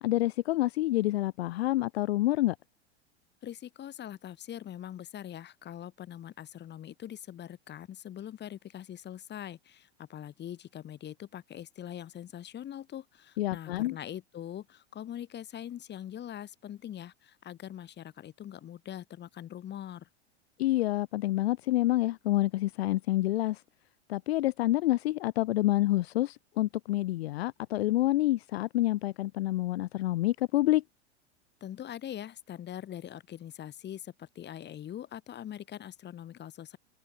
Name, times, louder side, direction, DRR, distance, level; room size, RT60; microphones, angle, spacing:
voice 1, 0.0-2.6 13.4-14.0 20.6-23.6 24.1-30.8, left 16 dB, 60° left, 2.0 m, -28 dB
voice 2, 3.4-20.1 31.6-36.8, left 11 dB, 30° left, 5.9 m, -43 dB
hypercardioid pair, 95°, 35 cm